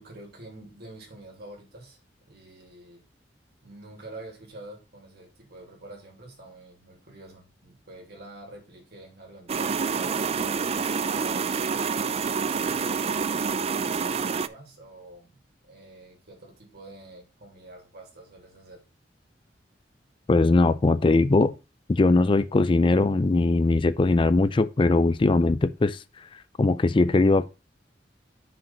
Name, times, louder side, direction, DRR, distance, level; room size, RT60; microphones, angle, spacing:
voice 1, 0.0-2.0 2.3-3.0 3.6-10.4 11.1-12.1 12.6-18.8, right 2 dB, 60° right, 2.9 m, -47 dB
sound 1, 9.5-14.5, right 5 dB, 35° right, 0.4 m, -27 dB
voice 2, 20.3-21.5 21.9-26.0 26.6-27.5, left 2 dB, 30° left, 0.4 m, -20 dB
5.9 x 5.1 x 5.7 m
head